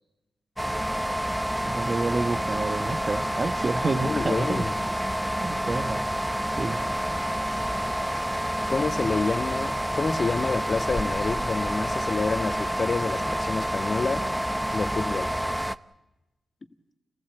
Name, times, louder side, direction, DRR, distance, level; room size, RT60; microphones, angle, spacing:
sound 1, 0.6-15.8, equal, ahead, 0.7 m, -28 dB
voice 1, 1.6-4.6 5.4-6.0 6.6-6.8, right 3 dB, 45° right, 7 dB, 1.2 m, -29 dB
voice 2, 3.9-4.7 8.7-14.3 14.7-15.3, left 4 dB, 45° left, 9 dB, 1.6 m, -28 dB
28.5 x 15.0 x 8.3 m, 1.0 s
supercardioid pair, 55°, 0 cm